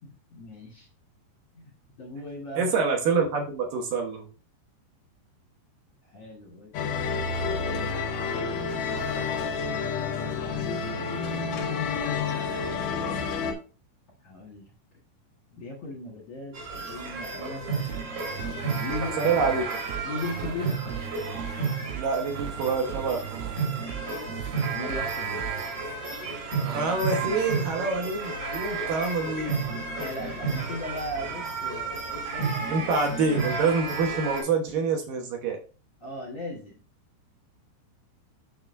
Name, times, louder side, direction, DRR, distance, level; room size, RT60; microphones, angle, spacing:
voice 1, 0.0-0.9 1.5-1.7 2.0-2.7 6.0-7.2 14.2-14.7 15.5-17.9 18.3-19.3 20.0-20.8 24.7-25.5 30.0-33.0 36.0-36.8, left 1 dB, 55° left, -3 dB, 1.7 m, -39 dB
voice 2, 2.6-4.3 19.2-19.6 21.9-23.6 26.6-29.6 32.7-35.6, right 4 dB, 65° right, 2 dB, 2.3 m, -26 dB
sound 1, 6.7-13.5, left 5 dB, 75° left, 1.7 m, -29 dB
sound 2, 16.5-34.4, right 4 dB, 50° right, 3.9 m, -32 dB
sound 3, 17.9-25.7, right 12 dB, 80° right, 2.9 m, -38 dB
7.8 x 6.8 x 2.6 m, 0.35 s
omnidirectional pair, 5.5 m